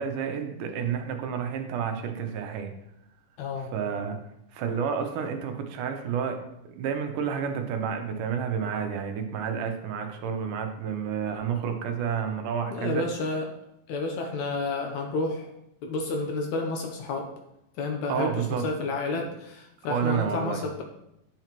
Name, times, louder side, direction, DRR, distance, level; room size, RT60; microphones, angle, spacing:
voice 1, 0.0-2.7 3.7-4.2 4.5-6.4 6.8-13.0 18.1-18.7 19.9-20.6, right 7 dB, 75° right, 5 dB, 2.3 m, -30 dB
voice 2, 3.4-3.7 12.7-13.5 13.9-15.5 15.8-17.3 17.8-20.8, left 3 dB, 75° left, 2 dB, 1.9 m, -30 dB
10.0 x 5.8 x 3.0 m, 0.84 s
omnidirectional pair, 3.8 m